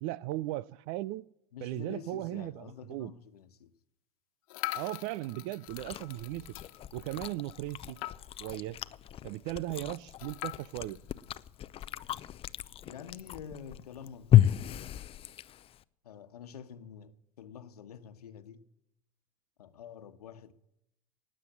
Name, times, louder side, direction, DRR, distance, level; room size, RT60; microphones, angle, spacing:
voice 1, 0.0-1.2 1.6-3.1 4.7-6.5 6.9-8.0 8.4-8.8 9.2-11.0, right 16 dB, 55° right, 0.6 m, -37 dB
voice 2, 1.5-3.7 12.9-15.0 16.0-18.6 19.6-20.5, left 8 dB, 85° left, 1.2 m, -48 dB
sound 1, 4.5-8.5 8.9-9.0 9.2-9.3 10.2-11.9, left 17 dB, 65° left, 1.3 m, -43 dB
Chewing mastication, 5.7-15.8, left 12 dB, 30° left, 0.6 m, -32 dB
19.0 x 7.6 x 8.9 m
hypercardioid pair, 100°, 19 cm